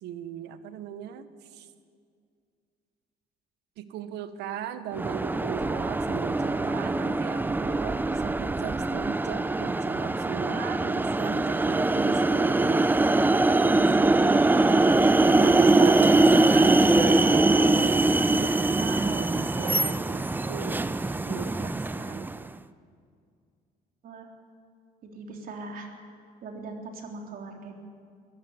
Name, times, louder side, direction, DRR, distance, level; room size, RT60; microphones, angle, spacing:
voice 1, 0.0-1.7 3.8-12.9 15.2-20.9 21.2-22.5, right 10 dB, 85° right, 11 dB, 1.3 m, -38 dB
sound 1, 4.9-22.4, right 2 dB, 10° right, 0.6 m, -23 dB
voice 2, 25.0-25.9 26.4-27.7, right 3 dB, 55° right, 2 dB, 3.6 m, -40 dB
22.5 x 14.0 x 9.6 m, 2.2 s
cardioid pair, 110°, 17 cm